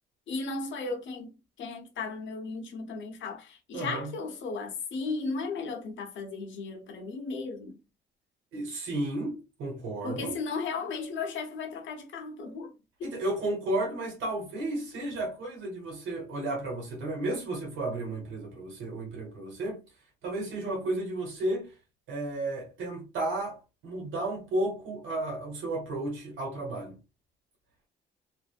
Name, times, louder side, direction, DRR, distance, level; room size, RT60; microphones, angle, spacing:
voice 1, 0.3-7.8 10.0-12.7 13.0-13.1, left 4 dB, 70° left, 0.8 m, -35 dB
voice 2, 3.7-4.1 8.5-10.4 13.0-19.8 20.2-21.7 22.1-27.0, right 2 dB, 85° right, 1.2 m, -33 dB
2.6 x 2.0 x 2.4 m
cardioid pair, 90°, 20 cm